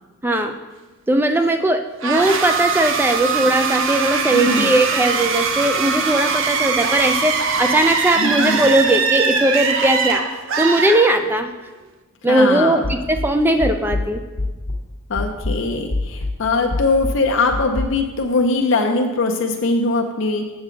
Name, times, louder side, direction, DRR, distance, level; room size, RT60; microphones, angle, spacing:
voice 1, 0.2-0.5 1.1-10.2 10.6-11.5 12.2-14.2, right 1 dB, 10° right, 6 dB, 0.4 m, -18 dB
sound 1, 2.0-11.6, right 5 dB, 60° right, 0.6 m, -21 dB
voice 2, 4.3-4.7 8.2-8.6 12.3-12.8 15.1-20.4, left 3 dB, 55° left, 3 dB, 0.6 m, -21 dB
sound 2, 12.8-14.9 15.2-17.8, left 2 dB, 80° left, 1.0 m, -26 dB
7.4 x 7.0 x 3.8 m, 1.2 s
head